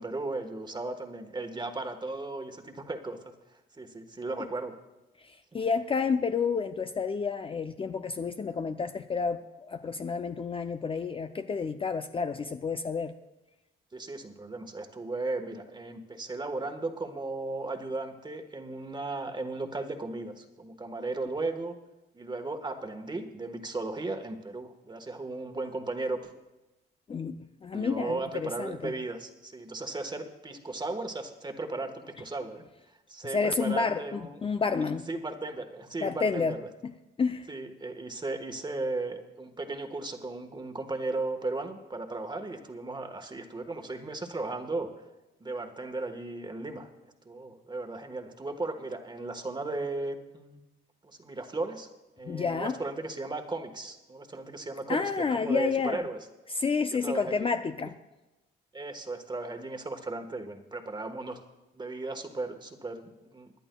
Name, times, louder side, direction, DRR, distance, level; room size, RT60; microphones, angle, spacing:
voice 1, 0.0-3.2 3.5-4.8 5.5-5.6 13.9-21.7 22.1-26.3 27.7-32.6 33.1-34.4 35.1-36.7 37.5-44.9 45.4-46.9 47.2-50.6 51.0-51.9 52.2-56.2 56.9-57.5 58.7-61.4 61.7-63.5, right 2 dB, 20° right, 5 dB, 1.3 m, -36 dB
voice 2, 5.2-9.4 9.7-13.1 27.1-28.9 33.3-35.1 36.0-36.6 36.8-36.9 37.2-37.5 52.2-52.8 54.9-56.0 56.5-57.9, left 5 dB, 25° left, 8 dB, 0.5 m, -30 dB
25.5 x 10.5 x 2.3 m, 1.0 s
cardioid pair, 90°, 20 cm